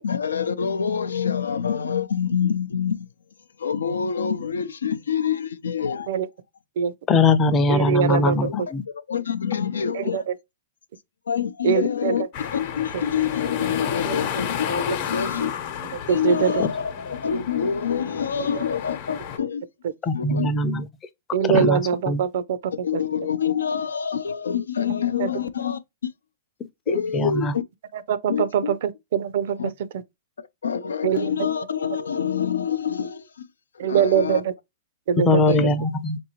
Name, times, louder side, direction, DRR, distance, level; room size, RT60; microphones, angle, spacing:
voice 1, 0.0-3.1 3.6-6.1 8.1-10.2 11.3-15.5 16.1-19.6 20.1-20.5 22.8-25.8 26.9-27.6 28.3-28.7 29.6-29.7 30.6-33.5 33.7-34.4 35.5-35.7, left 7 dB, 90° left, 0.5 m, -26 dB
voice 2, 7.1-8.8 16.6-16.7 20.0-20.8 21.5-21.8 22.1-22.2 26.9-27.5 35.3-36.2, left 3 dB, 20° left, 0.5 m, -21 dB
voice 3, 7.7-8.7 9.9-10.3 11.6-12.2 12.9-13.0 14.1-14.2 16.1-16.6 18.4-18.6 21.3-22.7 25.2-25.3 28.1-29.7 31.0-31.5 33.8-34.5 35.1-35.6, right 8 dB, 65° right, 0.5 m, -23 dB
sound 1, 12.3-19.4, left 9 dB, 45° left, 0.9 m, -32 dB
3.8 x 2.6 x 2.8 m
hypercardioid pair, 130°, 0 cm